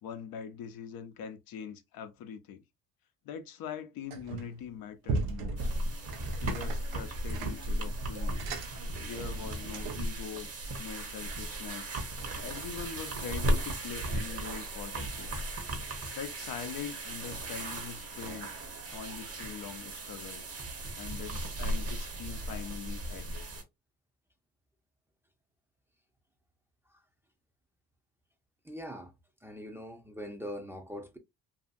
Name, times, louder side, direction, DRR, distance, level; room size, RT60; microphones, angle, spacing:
voice 1, 0.0-2.6 3.2-5.7 6.4-8.4 9.0-10.5 10.8-12.0 12.4-15.4 16.2-18.5 18.9-20.5 21.0-23.5, left 7 dB, 70° left, 0.7 m, -42 dB
sound 1, 4.1-4.6 5.0-10.2, right 3 dB, 75° right, 0.7 m, -38 dB
sound 2, 5.6-23.6, right 1 dB, 40° right, 1.0 m, -36 dB
voice 2, 28.6-29.1 29.4-31.2, equal, 5° right, 0.6 m, -42 dB
2.7 x 2.5 x 2.5 m
cardioid pair, 85°, 37 cm